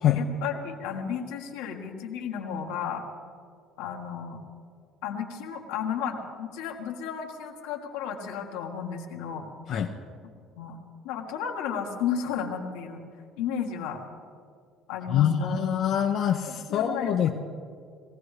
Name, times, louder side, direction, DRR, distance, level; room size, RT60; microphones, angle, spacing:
voice 1, 0.2-3.0 3.8-4.4 5.0-9.5 10.6-10.8 11.0-13.0 13.4-14.0 14.9-15.7 16.5-17.3, left 7 dB, 90° left, 1 dB, 1.5 m, -33 dB
voice 2, 15.1-17.3, left 9 dB, 60° left, 2 dB, 0.7 m, -24 dB
21.0 x 15.5 x 3.3 m, 2.3 s
supercardioid pair, 85°, 0 cm